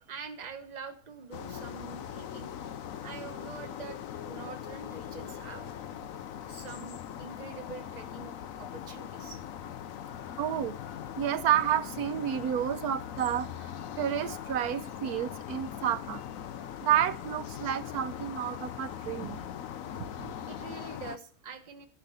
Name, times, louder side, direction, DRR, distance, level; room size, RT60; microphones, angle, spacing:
voice 1, 0.1-2.8 3.0-5.8 6.3-9.4 20.4-21.9, right 5 dB, 30° right, 9 dB, 1.2 m, -45 dB
sound 1, 1.3-21.2, left 9 dB, 70° left, 1.1 m, -41 dB
voice 2, 10.4-10.7 11.2-16.2 16.8-19.4 20.0-20.3, right 10 dB, 90° right, 15 dB, 1.3 m, -30 dB
14.5 x 5.8 x 6.9 m, 0.43 s
omnidirectional pair, 1.6 m